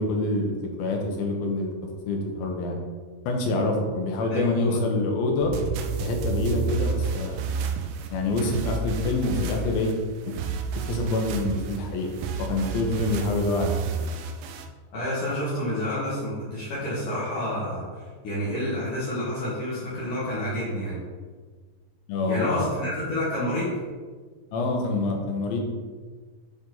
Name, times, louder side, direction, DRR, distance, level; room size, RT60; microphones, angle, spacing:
voice 1, 0.0-1.7 2.1-2.8 3.3-5.5 6.0-7.5 8.1-9.9 10.3-10.4 10.9-12.1 12.4-14.0 22.1-22.7 24.5-25.6, left 2 dB, 80° left, 2 dB, 2.7 m, -26 dB
voice 2, 4.3-4.8 14.9-21.0 22.3-23.8, left 1 dB, 60° left, -9 dB, 3.0 m, -29 dB
sound 1, 5.4-14.7, right 5 dB, 80° right, 2.4 m, -30 dB
9.3 x 4.1 x 3.9 m, 1.5 s
omnidirectional pair, 4.3 m